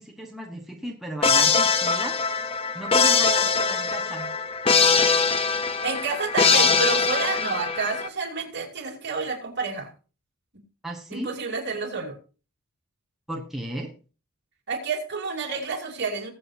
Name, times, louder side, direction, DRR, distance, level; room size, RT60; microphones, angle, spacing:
voice 1, 0.0-2.2 2.7-4.3 10.8-11.4 13.3-13.9, right 1 dB, ahead, -2 dB, 1.2 m, -35 dB
sound 1, 1.2-8.1, left 5 dB, 25° left, 0.6 m, -22 dB
voice 2, 5.8-9.9 11.1-12.1 14.7-16.3, right 4 dB, 50° right, 0 dB, 2.8 m, -29 dB
20.5 x 7.8 x 2.7 m, 0.35 s
head